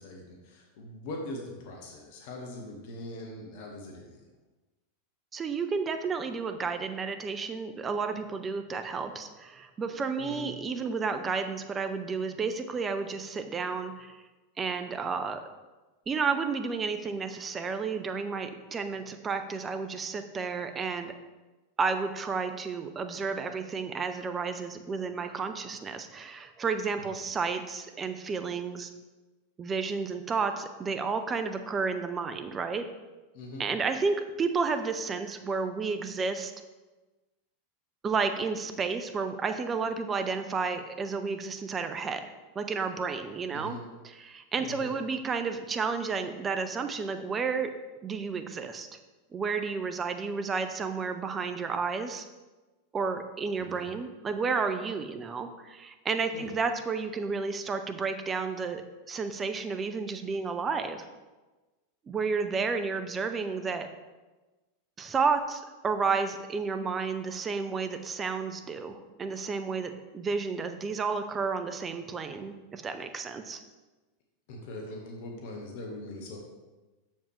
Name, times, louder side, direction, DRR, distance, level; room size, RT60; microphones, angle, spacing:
voice 1, 0.0-4.3 10.2-10.4 27.0-27.1 33.3-33.6 43.5-43.8 44.6-44.9 53.6-53.9 56.3-56.5 74.5-76.4, left 1 dB, 55° left, 1 dB, 1.2 m, -41 dB
voice 2, 5.3-14.2 14.6-15.4 16.1-21.1 21.8-28.9 29.6-32.8 33.6-36.5 38.0-42.3 42.5-43.8 44.2-47.7 48.0-48.9 49.3-52.3 52.9-58.8 59.1-61.0 62.1-63.9 65.0-73.6, right 5 dB, 25° right, 8 dB, 0.6 m, -31 dB
7.3 x 7.0 x 3.2 m, 1.2 s
figure-of-eight pair, 90°, 0 cm